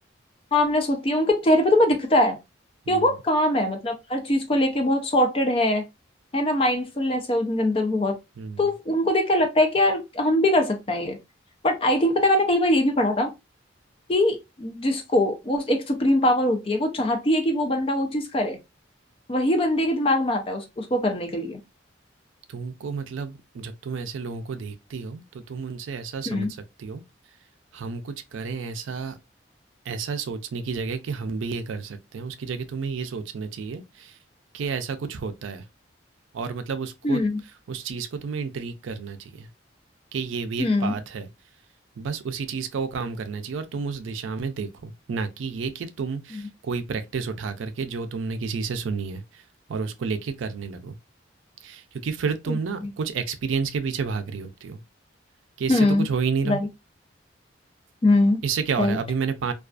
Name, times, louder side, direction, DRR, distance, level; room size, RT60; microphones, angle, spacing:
voice 1, 0.5-2.4 2.9-5.8 6.3-8.2 8.6-11.2 11.6-13.3 14.1-18.6 19.3-21.6 26.3-26.5 37.0-37.4 40.6-41.0 52.5-52.6 55.7-56.0 56.4-56.7 58.0-58.4 58.8-59.0, left 1 dB, 30° left, 0.4 m, -22 dB
voice 2, 2.9-3.2 8.4-8.7 22.5-27.0 27.7-29.2 29.9-34.2 34.5-35.7 36.3-37.2 37.7-39.5 40.1-41.3 42.0-49.4 49.7-51.0 51.6-54.8 55.6-56.6 58.4-59.5, right 5 dB, 80° right, 0.4 m, -31 dB
2.3 x 2.3 x 2.3 m
head